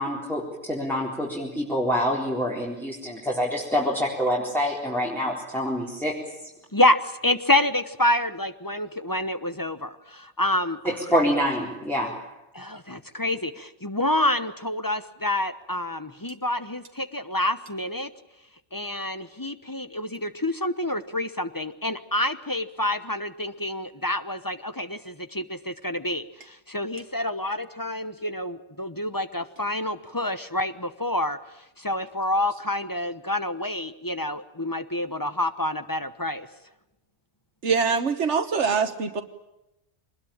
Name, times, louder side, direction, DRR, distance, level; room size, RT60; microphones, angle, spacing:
voice 1, 0.0-6.2 10.8-12.3, equal, ahead, -4 dB, 4.0 m, -26 dB
voice 2, 6.7-11.2 12.5-18.1 18.7-36.5, left 1 dB, 20° left, 11 dB, 1.0 m, -28 dB
voice 3, 37.6-39.2, right 5 dB, 90° right, 7 dB, 1.5 m, -24 dB
24.0 x 20.5 x 8.8 m, 0.90 s
omnidirectional pair, 1.2 m